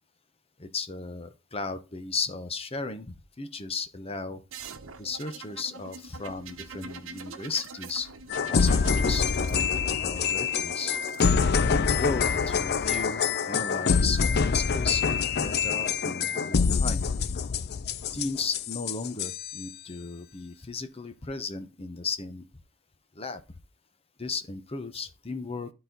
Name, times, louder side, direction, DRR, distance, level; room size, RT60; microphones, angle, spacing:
voice 1, 0.6-4.4 5.0-8.1 8.5-11.0 11.6-15.0 15.4-17.1 18.1-22.4 23.1-23.4 24.2-25.7, left 4 dB, 30° left, 0.9 m, -35 dB
sound 1, 4.5-13.1 14.2-14.8, right 4 dB, 90° right, 1.0 m, -45 dB
sound 2, 8.3-19.6, left 5 dB, 55° left, 0.5 m, -26 dB
11.5 x 4.2 x 3.9 m
head